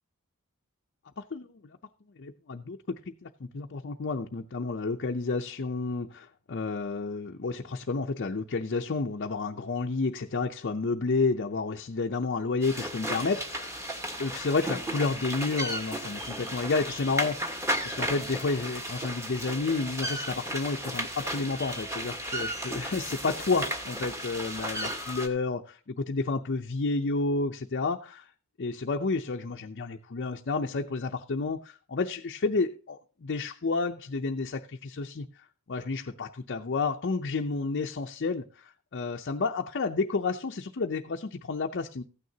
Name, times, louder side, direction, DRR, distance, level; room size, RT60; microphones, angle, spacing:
voice 1, 1.2-1.6 2.2-2.8 3.2-13.8 14.2-28.3 28.6-35.3 35.7-42.0, left 3 dB, 50° left, 0.6 m, -31 dB
sound 1, 12.6-25.3, equal, 15° right, 1.3 m, -34 dB
15.0 x 9.3 x 2.8 m
head